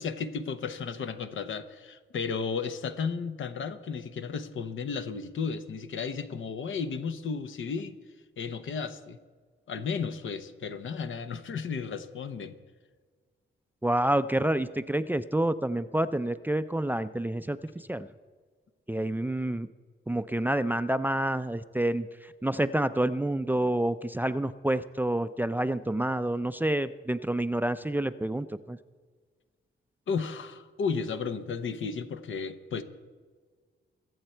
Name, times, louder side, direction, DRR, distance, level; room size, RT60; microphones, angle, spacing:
voice 1, 0.0-8.0 8.4-9.2 9.7-12.6 30.1-32.8, left 5 dB, 75° left, 9 dB, 1.0 m, -34 dB
voice 2, 13.8-18.1 18.9-19.7 20.1-28.8, right 1 dB, 10° right, 12 dB, 0.4 m, -28 dB
22.5 x 8.0 x 4.5 m, 1.5 s
cardioid pair, 85°, 21 cm